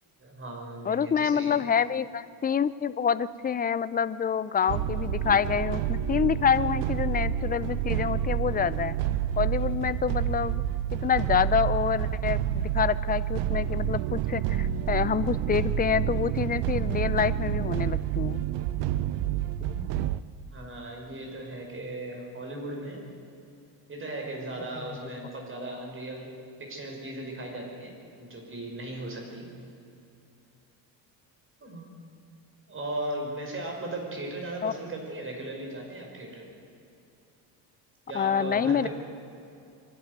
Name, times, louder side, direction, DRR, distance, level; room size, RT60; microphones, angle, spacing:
voice 1, 0.2-1.6 20.5-23.0 23.9-26.3 26.6-29.5 31.6-31.9 32.7-36.5 38.1-38.9, right 1 dB, 30° right, 1 dB, 5.4 m, -37 dB
voice 2, 0.8-9.0 9.4-10.6 10.9-18.4 19.7-20.1 34.6-34.7 38.1-38.9, left 7 dB, 20° left, 15 dB, 0.5 m, -27 dB
sound 1, 4.7-20.2, right 11 dB, 80° right, 0.8 m, -28 dB
24.5 x 12.0 x 9.6 m, 2.7 s
cardioid pair, 125°, 42 cm